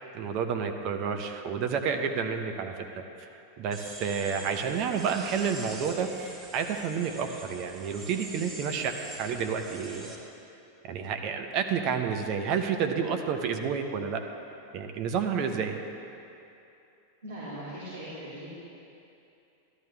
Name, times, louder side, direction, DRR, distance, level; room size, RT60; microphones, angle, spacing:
voice 1, 0.0-3.3 3.6-10.2 10.8-14.2 14.7-15.8, right 6 dB, 45° right, 5 dB, 0.8 m, -30 dB
sound 1, 3.7-10.2, right 1 dB, 25° right, 1.6 m, -44 dB
voice 2, 17.2-18.5, right 1 dB, 80° right, -10 dB, 2.9 m, -40 dB
13.0 x 12.0 x 3.4 m, 2.8 s
figure-of-eight pair, 90°, 0 cm